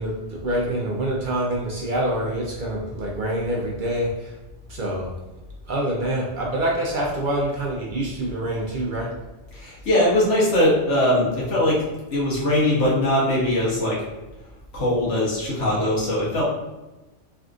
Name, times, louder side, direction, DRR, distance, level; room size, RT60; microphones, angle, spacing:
voice 1, 0.0-4.3 4.7-5.1 5.6-9.1, right 1 dB, 60° right, -3 dB, 0.6 m, -26 dB
voice 2, 9.5-14.0 14.7-16.4, left 1 dB, 80° left, -6 dB, 1.3 m, -21 dB
3.4 x 2.5 x 2.4 m, 1.1 s
omnidirectional pair, 1.2 m